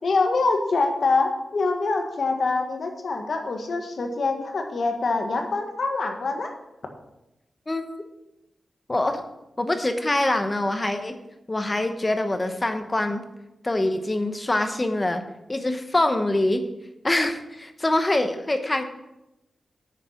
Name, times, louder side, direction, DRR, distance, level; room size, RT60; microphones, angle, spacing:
voice 1, 0.0-6.5, left 3 dB, 60° left, 4 dB, 1.5 m, -25 dB
voice 2, 8.9-9.2 9.6-11.1 11.5-13.2 13.6-15.2 15.5-16.6 17.0-18.8, left 1 dB, 20° left, 7 dB, 0.9 m, -24 dB
8.8 x 6.5 x 5.8 m, 0.92 s
wide cardioid pair, 115°, 0 cm